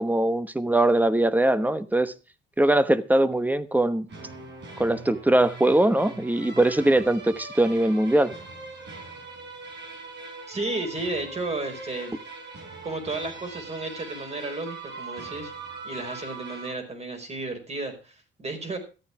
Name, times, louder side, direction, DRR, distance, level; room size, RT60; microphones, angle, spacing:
voice 1, 0.0-2.1 2.6-4.1 4.8-8.3, right 1 dB, 10° right, 14 dB, 1.1 m, -21 dB
sound 1, 4.1-16.7, right 3 dB, 60° right, 5.7 m, -41 dB
voice 2, 10.5-12.2 12.8-15.5 15.8-18.8, right 2 dB, 35° right, 6 dB, 4.8 m, -33 dB
13.5 x 8.6 x 5.9 m, 0.33 s
cardioid pair, 90°, 20 cm